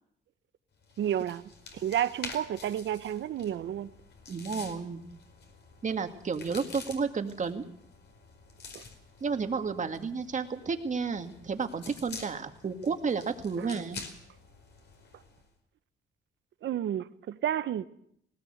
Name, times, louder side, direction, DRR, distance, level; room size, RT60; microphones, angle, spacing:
sound 1, 0.8-15.5, left 4 dB, 60° left, 4.9 m, -48 dB
voice 1, 1.0-1.4 1.7-3.9 8.7-8.8 13.6-13.7 16.6-17.8, right 10 dB, 70° right, 14 dB, 1.1 m, -31 dB
voice 2, 4.3-5.0 5.8-7.6 9.2-14.0, right 5 dB, 40° right, 6 dB, 2.2 m, -32 dB
19.5 x 18.0 x 8.1 m, 0.72 s
cardioid pair, 90°, 20 cm